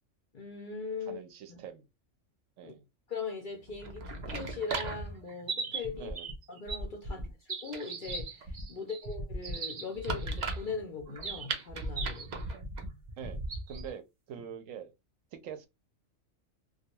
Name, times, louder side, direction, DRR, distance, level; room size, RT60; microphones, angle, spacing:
voice 1, 0.3-1.2 1.5-1.6 2.6-2.7 3.1-6.1 6.5-12.3, left 4 dB, 55° left, 0.5 m, -40 dB
voice 2, 1.1-1.8 2.6-2.8 6.0-6.3 7.1-7.3 8.8-8.9 13.2-14.9 15.3-15.7, right 8 dB, 85° right, 1.0 m, -45 dB
sound 1, 3.7-13.9, right 3 dB, 55° right, 0.5 m, -37 dB
2.3 x 2.3 x 2.8 m
omnidirectional pair, 1.4 m